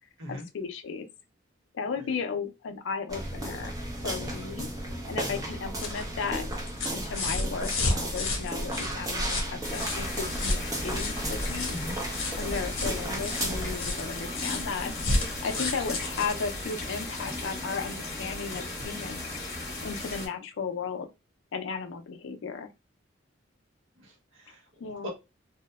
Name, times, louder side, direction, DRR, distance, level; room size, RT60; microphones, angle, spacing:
voice 1, 0.3-1.1 1.7-3.7 4.0-4.7 5.1-6.4 6.9-11.7 12.4-14.9 15.4-19.2 19.8-21.1 21.5-22.7 24.8-25.1, left 5 dB, 65° left, 0.4 m, -35 dB
sound 1, 3.1-13.8, right 1 dB, 20° right, 0.5 m, -34 dB
sound 2, 5.5-17.5 18.8-18.9, left 2 dB, 85° left, 0.8 m, -33 dB
sound 3, 9.6-20.3, left 2 dB, 15° left, 0.8 m, -36 dB
voice 2, 24.0-25.1, equal, 65° right, 0.8 m, -41 dB
2.7 x 2.0 x 2.2 m
head